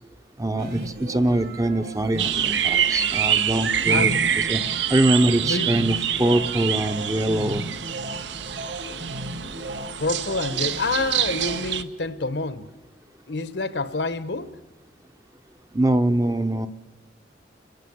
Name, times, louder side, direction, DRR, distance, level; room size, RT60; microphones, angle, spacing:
voice 1, 0.4-4.1 4.5-4.6 4.9-7.6 15.7-16.7, right 1 dB, 15° right, 9 dB, 0.7 m, -23 dB
sound 1, 0.6-11.6, right 1 dB, 50° right, 2.0 m, -36 dB
sound 2, 2.2-11.8, right 9 dB, 75° right, 0.9 m, -26 dB
voice 2, 3.9-4.2 5.4-5.7 10.0-12.7 13.3-14.5, left 3 dB, 70° left, 13 dB, 1.1 m, -27 dB
30.0 x 13.0 x 9.4 m, 1.2 s
head